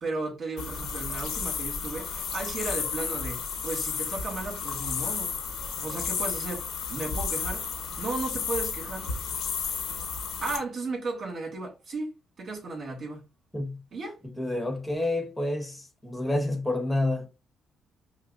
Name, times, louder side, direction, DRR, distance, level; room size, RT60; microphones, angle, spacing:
voice 1, 0.0-5.3 5.8-7.7 8.0-9.1 10.4-12.1 12.4-13.2 13.9-14.2, right 3 dB, 50° right, 2.3 m, -34 dB
sound 1, 0.6-10.6, left 6 dB, 85° left, 1.0 m, -32 dB
voice 2, 14.2-17.3, left 1 dB, 10° left, 1.2 m, -29 dB
5.5 x 2.1 x 2.6 m
cardioid pair, 90°, 0 cm